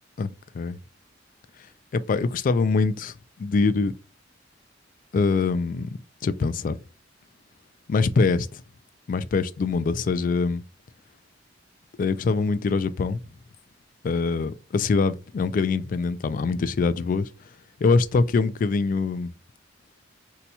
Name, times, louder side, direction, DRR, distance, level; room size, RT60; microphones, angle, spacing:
voice 1, 0.2-0.8 1.9-3.9 5.1-5.9 6.2-6.8 7.9-8.6 9.1-10.6 12.0-13.2 14.0-17.3 17.8-19.3, left 4 dB, 45° left, 0.3 m, -24 dB
2.8 x 2.2 x 4.1 m
head